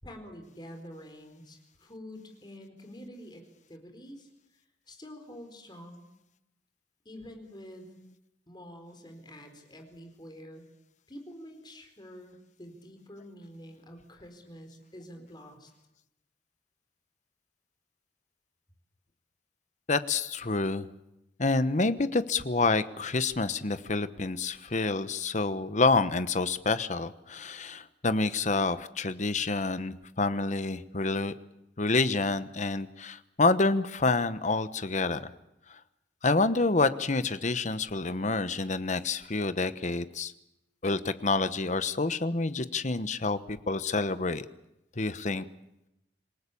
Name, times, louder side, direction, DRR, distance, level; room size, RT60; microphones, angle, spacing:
voice 1, 0.0-3.4 3.7-4.3 4.9-6.1 7.0-7.9 8.5-10.7 11.1-15.7, equal, 25° left, 5 dB, 4.3 m, -47 dB
voice 2, 19.9-20.9 21.4-31.3 31.8-35.3 36.2-40.3 40.8-44.5 45.0-45.4, left 3 dB, 45° left, 13 dB, 1.1 m, -28 dB
27.0 x 18.5 x 8.5 m, 0.89 s
head